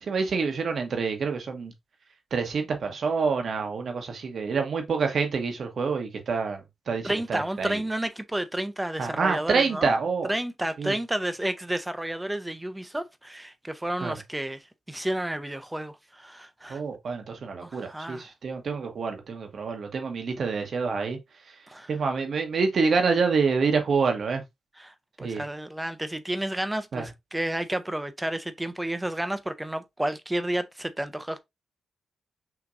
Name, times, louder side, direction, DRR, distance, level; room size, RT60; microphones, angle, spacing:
voice 1, 0.0-1.7 2.3-7.8 9.0-10.3 10.8-10.9 14.0-14.1 16.7-21.2 21.5-21.6 21.9-24.4 25.2-25.4 26.9-27.0, right 5 dB, 65° right, 1.1 m, -27 dB
voice 2, 7.0-9.9 10.3-16.8 17.6-18.3 21.7-21.9 24.8-31.4, right 1 dB, 10° right, 0.6 m, -31 dB
5.8 x 2.9 x 2.5 m
cardioid pair, 95°, 0 cm